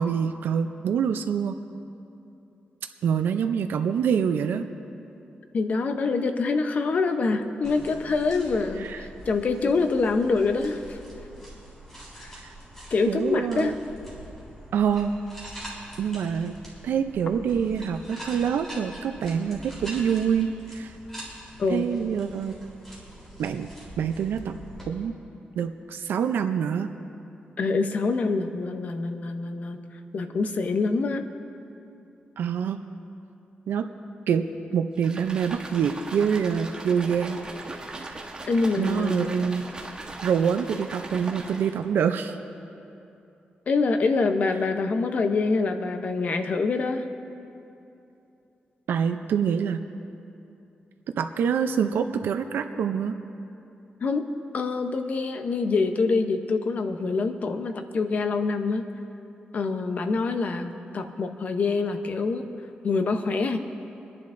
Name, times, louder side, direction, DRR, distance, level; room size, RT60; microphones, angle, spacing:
voice 1, 0.0-1.6 3.0-4.7 8.8-9.1 12.4-12.5 13.1-13.7 14.7-15.1 16.0-16.5 16.8-21.0 21.7-22.5 23.4-23.7 24.0-24.6 24.9-25.1 25.6-26.9 32.4-32.8 33.7-33.9 34.3-34.5 34.7-37.4 38.8-39.6 40.2-42.4 48.9-49.8 51.2-53.2, right 7 dB, 90° right, 7 dB, 0.5 m, -26 dB
voice 2, 5.5-11.0 12.2-12.3 12.9-13.7 21.6-21.9 27.6-29.8 30.1-31.2 38.5-39.4 43.7-47.0 54.0-58.9 59.5-62.5 62.8-63.6, left 4 dB, 45° left, 7 dB, 0.7 m, -25 dB
Loose Leaf Tea, 7.6-24.9, right 1 dB, 10° left, 3.4 m, -44 dB
sound 1, 35.0-41.8, right 2 dB, 25° right, 1.1 m, -39 dB
27.5 x 10.5 x 2.6 m, 2.8 s
wide cardioid pair, 150°, 3 cm